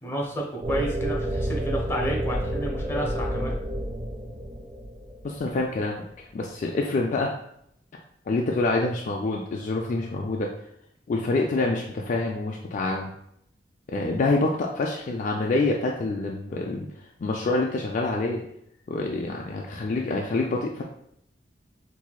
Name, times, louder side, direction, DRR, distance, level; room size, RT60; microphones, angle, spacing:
voice 1, 0.0-3.5, right 1 dB, 15° left, -2 dB, 0.7 m, -30 dB
sound 1, 0.6-5.7, right 1 dB, 25° right, 0.4 m, -30 dB
voice 2, 5.2-7.3 8.3-10.5 11.1-13.1 13.9-16.9 17.2-18.4 18.9-20.8, left 2 dB, 45° left, 0 dB, 0.3 m, -26 dB
4.4 x 2.7 x 2.3 m, 0.73 s
head